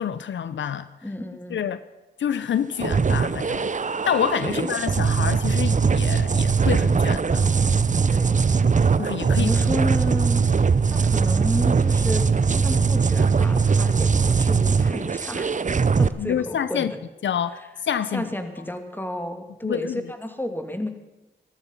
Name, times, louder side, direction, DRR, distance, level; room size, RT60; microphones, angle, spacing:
voice 1, 0.0-1.1 1.5-1.8 2.2-3.7 4.0-7.5 9.0-9.5 16.2-16.9 17.2-17.5 17.8-18.3 19.6-20.1, left 8 dB, 75° left, 14 dB, 0.6 m, -27 dB
voice 2, 1.0-1.6 4.5-4.7 8.1-8.4 9.3-10.5 10.9-15.5 16.0-17.0 18.1-20.9, left 1 dB, 10° left, 7 dB, 2.2 m, -31 dB
sound 1, 2.8-16.1, right 5 dB, 40° right, 0.7 m, -21 dB
14.0 x 13.5 x 5.6 m, 1.0 s
cardioid pair, 40°, 19 cm